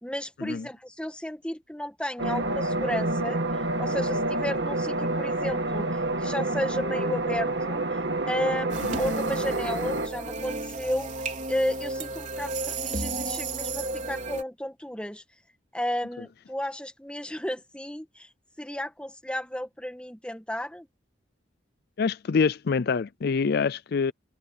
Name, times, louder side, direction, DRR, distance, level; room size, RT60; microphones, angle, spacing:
voice 1, 0.0-3.4 3.8-5.9 6.2-7.8 8.3-11.1 11.5-15.2 15.7-18.3 18.6-20.9, equal, 5° left, 1.8 m, -32 dB
sound 1, 2.2-10.1, right 2 dB, 65° right, 2.0 m, -28 dB
sound 2, 8.7-14.4, right 2 dB, 40° right, 4.0 m, -33 dB
voice 2, 22.0-24.1, left 5 dB, 55° left, 0.4 m, -26 dB
head